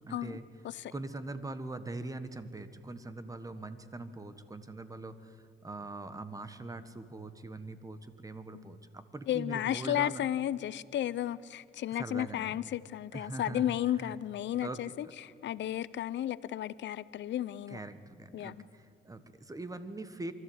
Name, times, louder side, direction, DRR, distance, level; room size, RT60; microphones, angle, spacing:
voice 1, 0.1-0.4 0.9-10.2 12.0-12.6 13.1-13.7 14.0-14.1 14.6-14.8 17.7-20.3, right 2 dB, 15° right, 11 dB, 1.4 m, -42 dB
voice 2, 9.3-17.8 18.3-18.6, left 12 dB, 65° left, 18 dB, 0.6 m, -33 dB
24.0 x 14.0 x 8.0 m, 2.5 s
cardioid pair, 90°, 20 cm